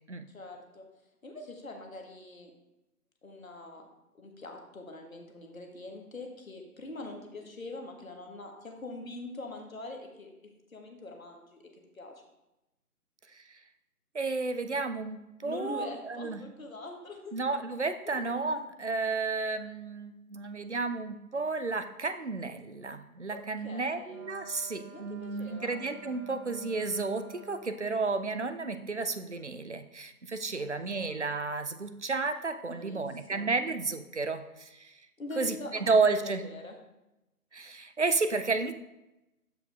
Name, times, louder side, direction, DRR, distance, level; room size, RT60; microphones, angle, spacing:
voice 1, 0.3-0.9 1.2-2.5 3.2-3.9 4.1-10.3 10.7-11.6 11.9-12.1 15.4-17.3 18.0-18.2 18.5-18.7 23.3-24.2 24.9-25.8 30.5-31.3 32.7-33.5 35.2-36.8, left 2 dB, 60° left, 3 dB, 1.5 m, -44 dB
voice 2, 14.1-16.4 17.3-34.9 35.4-36.4 37.5-38.7, right 3 dB, 50° right, 10 dB, 0.4 m, -32 dB
Wind instrument woodwind instrument, 24.1-27.9, right 1 dB, 70° right, 2.1 m, -49 dB
13.5 x 4.9 x 2.4 m, 0.94 s
figure-of-eight pair, 155°, 46 cm